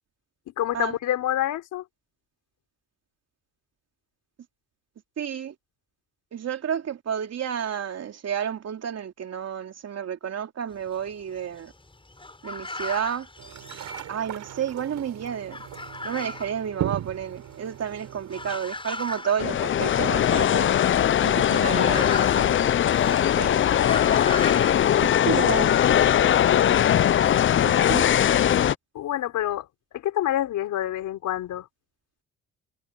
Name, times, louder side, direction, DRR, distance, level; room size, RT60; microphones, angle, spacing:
voice 1, 0.6-1.8 26.3-26.8 28.9-29.7 29.9-31.7, left 12 dB, 80° left, 5.1 m, -28 dB
voice 2, 5.2-5.5 6.3-11.7 12.4-13.3 14.1-15.6 16.0-20.8 21.2-22.7 23.0-23.6 25.0-25.8 27.6-28.1, right 8 dB, 55° right, 3.5 m, -31 dB
sound 1, 10.7-14.6 14.9-25.9, left 2 dB, 15° left, 7.6 m, -38 dB
sound 2, 13.4-18.6, right 12 dB, 75° right, 6.9 m, -37 dB
sound 3, 19.4-28.7, left 10 dB, 40° left, 0.5 m, -20 dB
cardioid pair, 90°, 30 cm